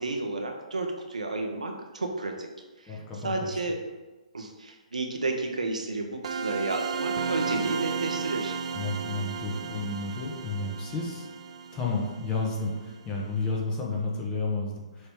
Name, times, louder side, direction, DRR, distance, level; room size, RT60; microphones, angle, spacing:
voice 1, 0.0-2.5 2.8-3.8 4.3-8.6, right 2 dB, 75° right, 3 dB, 1.0 m, -32 dB
voice 2, 2.9-3.5 8.7-11.3 11.7-15.1, left 3 dB, 20° left, -2 dB, 1.2 m, -31 dB
sound 1, 6.2-12.9, right 5 dB, 50° right, 0.7 m, -34 dB
6.5 x 3.3 x 4.6 m, 1.2 s
figure-of-eight pair, 130°, 4 cm